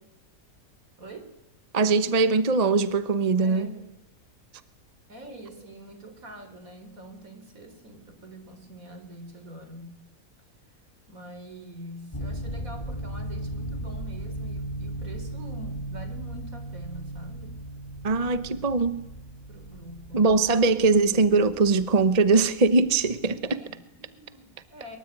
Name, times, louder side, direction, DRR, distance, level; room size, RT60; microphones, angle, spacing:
voice 1, 1.0-1.3 3.4-3.9 5.1-10.0 11.1-17.6 19.5-20.4 23.5-25.0, right 1 dB, 70° right, 8 dB, 4.3 m, -45 dB
voice 2, 1.7-3.7 18.0-19.0 20.1-23.6, right 4 dB, 30° right, 12 dB, 1.0 m, -21 dB
sound 1, 12.1-23.4, right 1 dB, 20° left, 2.3 m, -37 dB
23.5 x 23.5 x 9.0 m, 0.88 s
omnidirectional pair, 1.5 m